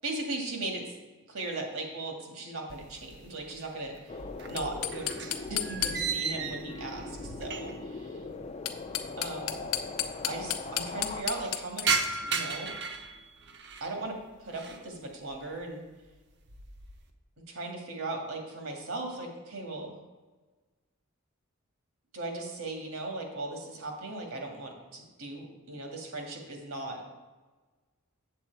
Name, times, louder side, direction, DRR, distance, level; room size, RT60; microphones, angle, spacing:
voice 1, 0.0-0.9 1.3-4.2 4.4-5.1 5.5-8.2 9.2-9.6 10.3-12.0 12.2-12.7 13.8-15.8 17.5-19.9 22.1-27.0, right 2 dB, 75° right, 1 dB, 1.9 m, -38 dB
sound 1, 2.7-3.6 3.9-8.0 8.2-8.3 9.2-9.3 9.5-9.6 9.8-10.3 10.7-13.9 14.4-14.9 15.3-15.7 16.1-17.0, right 5 dB, 55° right, 0.8 m, -35 dB
sound 2, 4.1-11.2, left 3 dB, 30° left, 0.4 m, -41 dB
sound 3, 4.6-6.3 8.5-12.1, left 11 dB, 90° left, 0.7 m, -34 dB
7.7 x 7.5 x 4.6 m, 1.3 s
head